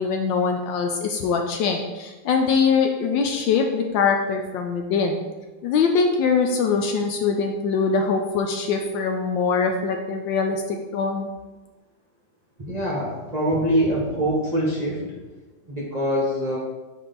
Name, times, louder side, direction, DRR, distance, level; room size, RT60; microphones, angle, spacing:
voice 1, 0.0-5.2 5.6-11.3, left 5 dB, 75° left, 3 dB, 1.2 m, -23 dB
voice 2, 12.6-15.2 15.6-16.6, equal, 25° right, -6 dB, 0.9 m, -24 dB
6.4 x 4.4 x 3.9 m, 1.2 s
omnidirectional pair, 2.3 m